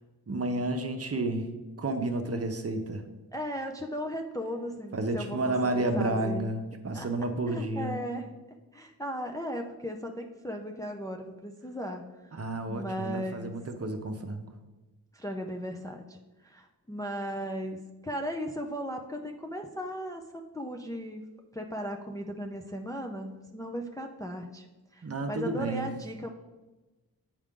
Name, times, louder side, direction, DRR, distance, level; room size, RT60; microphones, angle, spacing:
voice 1, 0.3-1.5 1.8-3.0 4.9-8.0 12.3-14.5 25.0-25.9, right 2 dB, 40° right, 5 dB, 0.8 m, -31 dB
voice 2, 3.3-6.5 6.9-7.1 7.5-8.4 8.7-12.3 12.7-13.5 15.1-21.2 21.5-24.7 24.9-26.3, equal, 10° left, 2 dB, 0.5 m, -37 dB
8.0 x 4.9 x 3.7 m, 1.1 s
wide cardioid pair, 110°, 38 cm